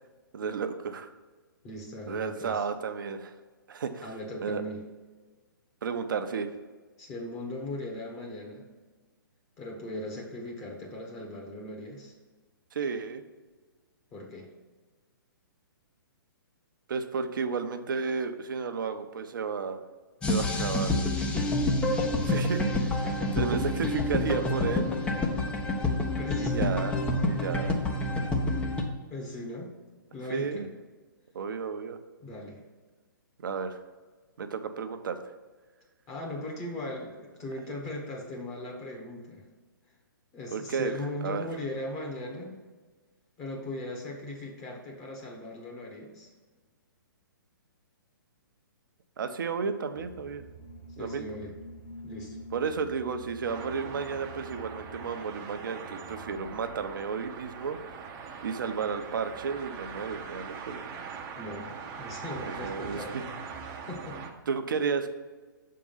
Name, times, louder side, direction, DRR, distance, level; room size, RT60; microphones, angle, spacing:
voice 1, 0.3-1.1 2.1-3.3 3.7-4.0 4.4-4.6 5.8-6.5 12.7-13.2 16.9-19.8 20.3-20.9 22.2-23.0 23.4-24.9 26.4-27.0 27.2-27.8 30.3-30.7 31.3-32.0 33.4-33.8 34.4-35.2 40.5-40.9 41.2-41.5 49.2-50.4 51.0-51.3 52.5-58.0 58.4-60.8 62.5-63.2 64.5-65.1, right 5 dB, 65° right, 8 dB, 0.7 m, -32 dB
voice 2, 1.6-2.6 4.0-4.8 7.0-8.7 9.6-12.1 14.1-14.5 21.3-21.6 23.0-23.4 26.2-26.7 29.1-29.7 30.1-30.7 32.2-32.6 36.1-39.5 40.3-42.6 43.4-46.3 51.0-51.6 52.0-52.4 61.4-63.2 63.9-64.2, left 1 dB, 25° left, -2 dB, 1.3 m, -38 dB
sound 1, 20.2-28.8, left 2 dB, 10° left, 0.6 m, -28 dB
sound 2, 49.9-55.1, equal, 80° left, 1.6 m, -46 dB
sound 3, 53.5-64.3, right 5 dB, 25° right, 0.7 m, -42 dB
6.8 x 3.7 x 5.6 m, 1.4 s
hypercardioid pair, 130°, 12 cm